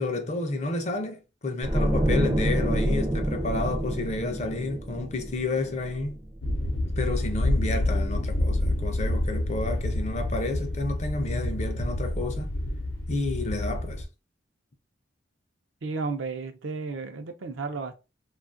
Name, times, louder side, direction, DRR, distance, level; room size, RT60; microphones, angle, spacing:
voice 1, 0.0-6.2 7.0-12.5 13.1-14.0, left 2 dB, 35° left, 0.4 m, -30 dB
sound 1, 1.6-6.7 7.0-7.2, right 1 dB, 25° right, 0.4 m, -28 dB
sound 2, 6.4-14.0, left 1 dB, 85° left, 0.6 m, -28 dB
voice 2, 15.8-18.0, right 4 dB, 80° right, 0.5 m, -33 dB
2.6 x 2.3 x 2.5 m
head